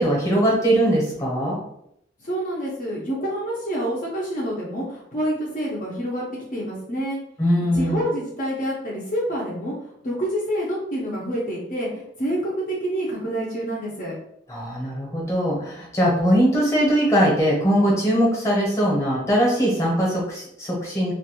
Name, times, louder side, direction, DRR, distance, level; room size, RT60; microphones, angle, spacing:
voice 1, 0.0-1.6 7.4-8.0 14.5-21.1, equal, 15° left, -3 dB, 0.9 m, -21 dB
voice 2, 2.2-6.2 6.5-7.2 7.7-14.2, equal, 50° left, -5 dB, 0.6 m, -27 dB
2.5 x 2.2 x 2.8 m, 0.74 s
head